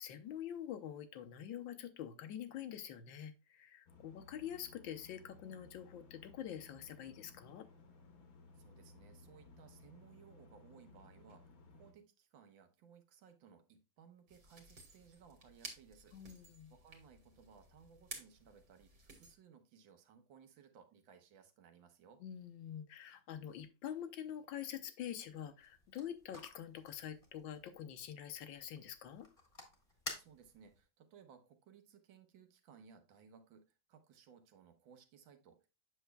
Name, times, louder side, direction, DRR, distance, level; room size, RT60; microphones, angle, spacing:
voice 1, 0.0-7.7 16.1-16.7 22.2-29.3, left 10 dB, 75° left, 8 dB, 1.5 m, -46 dB
sound 1, 3.9-11.9, left 3 dB, 55° left, 1.4 m, -60 dB
voice 2, 8.5-16.2 16.7-22.2 30.1-35.7, right 7 dB, 75° right, 7 dB, 1.6 m, -62 dB
sound 2, 14.3-19.3, right 3 dB, 50° right, 2.0 m, -54 dB
sound 3, 25.6-30.8, left 2 dB, 20° left, 1.3 m, -52 dB
7.9 x 6.5 x 2.2 m, 0.30 s
omnidirectional pair, 2.1 m